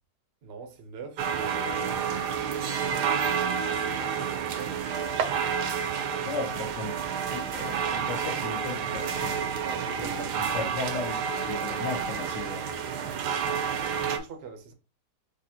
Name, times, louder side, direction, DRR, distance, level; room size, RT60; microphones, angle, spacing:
voice 1, 0.4-3.8 4.3-4.8 9.6-10.5 13.7-14.7, right 5 dB, 50° right, 0.8 m, -44 dB
sound 1, 1.2-14.2, right 7 dB, 75° right, 1.2 m, -29 dB
voice 2, 6.2-7.0 7.3-9.3 10.0-11.2 11.5-12.8, left 4 dB, 75° left, 1.8 m, -36 dB
5.1 x 3.0 x 2.7 m
omnidirectional pair, 1.9 m